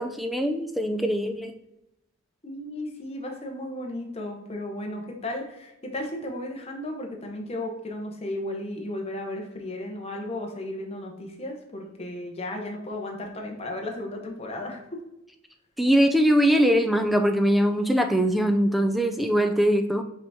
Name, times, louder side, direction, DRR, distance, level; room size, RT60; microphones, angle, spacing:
voice 1, 0.0-1.5 15.8-20.0, equal, ahead, 6 dB, 0.3 m, -22 dB
voice 2, 2.4-14.8, left 1 dB, 30° left, 1 dB, 0.8 m, -34 dB
5.5 x 3.5 x 2.7 m, 0.86 s
head